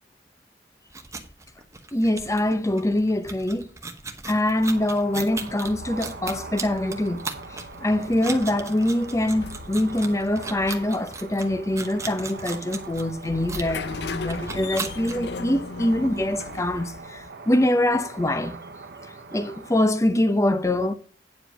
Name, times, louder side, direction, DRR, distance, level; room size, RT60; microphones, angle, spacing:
sound 1, 0.9-15.2, right 4 dB, 15° right, 1.0 m, -38 dB
voice 1, 1.9-3.7 4.3-18.6 19.3-20.9, left 1 dB, 15° left, 0.7 m, -24 dB
sound 2, 4.5-19.8, right 4 dB, 65° right, 0.9 m, -42 dB
sound 3, 5.6-17.3, left 4 dB, 65° left, 0.6 m, -39 dB
9.4 x 4.9 x 6.0 m
head